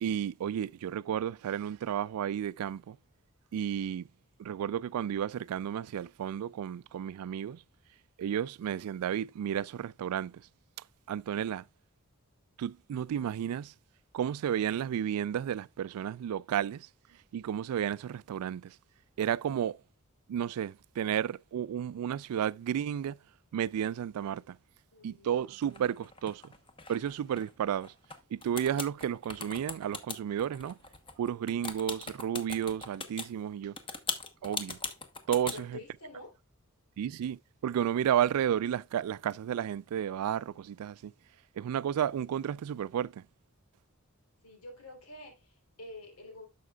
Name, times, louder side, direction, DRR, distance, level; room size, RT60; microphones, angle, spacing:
voice 1, 0.0-3.0 3.5-4.1 4.4-7.6 8.2-10.5 11.1-11.6 12.6-13.7 14.1-16.9 17.3-18.8 19.2-19.8 20.3-23.2 23.5-24.6 25.0-26.5 26.9-27.9 28.3-30.8 31.2-33.7 34.4-34.8 35.3-35.8 37.0-41.1 41.6-43.2, right 9 dB, 85° right, 0.3 m, -32 dB
voice 2, 24.9-25.5 35.4-36.3 44.4-46.5, left 2 dB, 85° left, 3.4 m, -48 dB
sound 1, 25.6-28.2 28.4-33.3 33.8-35.6, left 4 dB, 25° left, 1.0 m, -39 dB
11.0 x 6.5 x 2.3 m
head